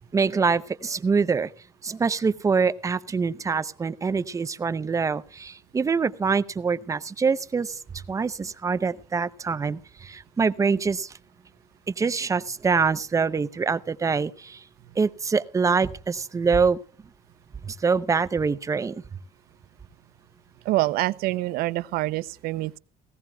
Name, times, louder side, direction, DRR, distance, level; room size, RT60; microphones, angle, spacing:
voice 1, 0.1-1.5 1.8-11.1 11.9-14.6 15.0-16.8 17.6-19.0, right 5 dB, 20° right, 0.6 m, -25 dB
voice 2, 20.6-22.8, right 18 dB, 90° right, 0.6 m, -26 dB
18.5 x 16.0 x 2.3 m
cardioid pair, 145°, 15 cm